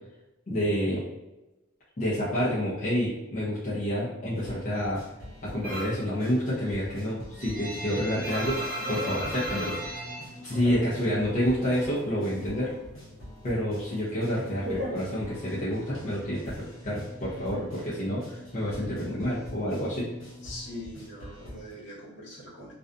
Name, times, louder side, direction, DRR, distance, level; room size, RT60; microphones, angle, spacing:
voice 1, 0.5-1.0 2.0-5.0 5.4-8.6 8.9-10.0 10.4-12.7 13.4-16.6 16.8-20.1, equal, 40° left, -9 dB, 0.6 m, -28 dB
sound 1, 4.3-21.7, equal, 85° left, 1.0 m, -45 dB
sound 2, 5.6-6.1 6.4-11.3 11.6-12.6 12.9-15.7, right 1 dB, 45° right, 0.6 m, -36 dB
voice 2, 20.4-22.7, left 1 dB, 65° left, -7 dB, 1.0 m, -42 dB
2.5 x 2.2 x 2.5 m, 1.0 s
head